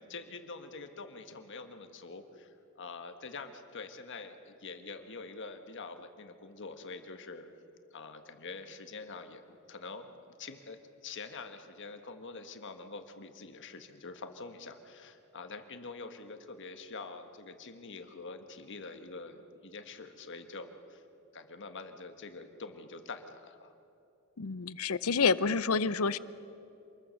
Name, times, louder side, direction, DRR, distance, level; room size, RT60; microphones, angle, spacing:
voice 1, 0.1-7.5 7.9-10.1 10.4-21.0 21.3-23.7, left 4 dB, 55° left, 7 dB, 1.4 m, -45 dB
voice 2, 24.4-26.2, left 5 dB, 70° left, 17 dB, 0.7 m, -28 dB
27.0 x 21.5 x 6.5 m, 2.8 s
head